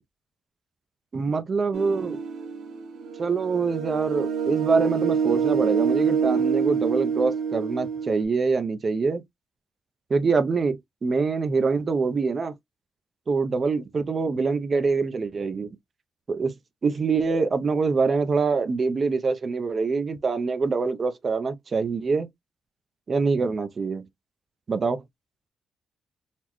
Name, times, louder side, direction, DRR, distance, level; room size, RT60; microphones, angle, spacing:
voice 1, 1.1-2.2 3.2-9.2 10.1-12.5 13.3-15.7 16.3-16.5 16.8-22.3 23.1-24.1 24.7-25.0, right 4 dB, 30° right, 0.5 m, -25 dB
sound 1, 1.7-8.2, right 6 dB, 70° right, 1.0 m, -26 dB
4.1 x 2.2 x 2.9 m
wide cardioid pair, 160°, 0 cm